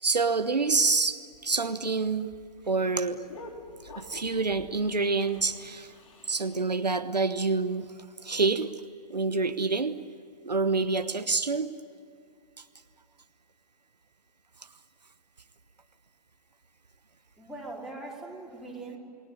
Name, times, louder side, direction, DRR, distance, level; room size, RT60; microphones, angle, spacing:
voice 1, 0.0-2.3 2.7-3.2 3.8-5.9 6.3-7.9 8.2-8.7 9.1-10.0 10.4-11.7, right 4 dB, 75° right, 10 dB, 1.1 m, -27 dB
sound 1, 1.1-6.7, left 3 dB, 50° left, 3.9 m, -49 dB
voice 2, 17.4-19.0, right 2 dB, ahead, -3 dB, 4.3 m, -41 dB
28.5 x 20.0 x 9.8 m, 2.4 s
figure-of-eight pair, 115°, 21 cm